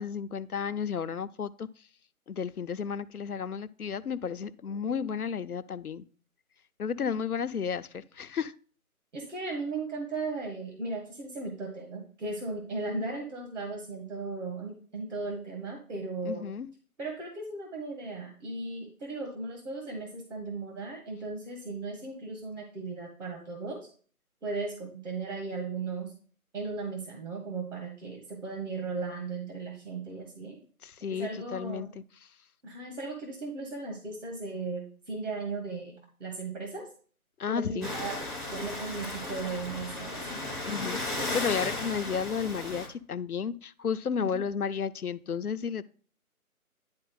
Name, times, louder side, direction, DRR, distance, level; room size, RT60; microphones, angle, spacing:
voice 1, 0.0-1.7 2.3-6.0 6.8-8.5 16.2-16.7 30.8-31.9 37.4-37.9 40.6-45.8, left 6 dB, 80° left, 0.6 m, -33 dB
voice 2, 9.1-16.4 17.0-23.8 24.4-26.1 26.5-30.6 31.1-31.9 32.6-36.9 37.5-38.2 38.5-40.4 44.3-44.4, right 3 dB, 55° right, 1.7 m, -36 dB
sound 1, 37.8-42.9, left 2 dB, ahead, 0.5 m, -35 dB
10.5 x 4.0 x 3.8 m
figure-of-eight pair, 150°, 44 cm